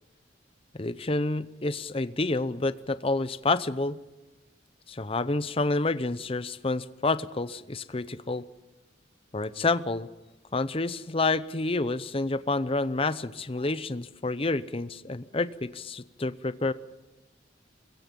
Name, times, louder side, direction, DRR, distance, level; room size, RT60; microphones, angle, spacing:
voice 1, 0.7-4.0 4.9-8.5 9.3-10.1 10.5-16.7, left 3 dB, 30° left, 14 dB, 0.7 m, -29 dB
24.5 x 22.0 x 5.4 m, 1.1 s
head